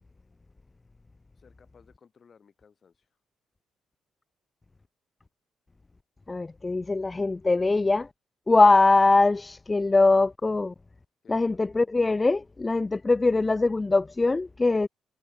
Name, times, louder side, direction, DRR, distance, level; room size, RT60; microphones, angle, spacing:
voice 1, 1.3-3.1 11.2-11.6, left 6 dB, 45° left, 4.6 m, -58 dB
voice 2, 6.3-8.1 8.5-10.7 11.3-14.9, left 3 dB, 20° left, 0.4 m, -22 dB
cardioid pair, 90°, 0 cm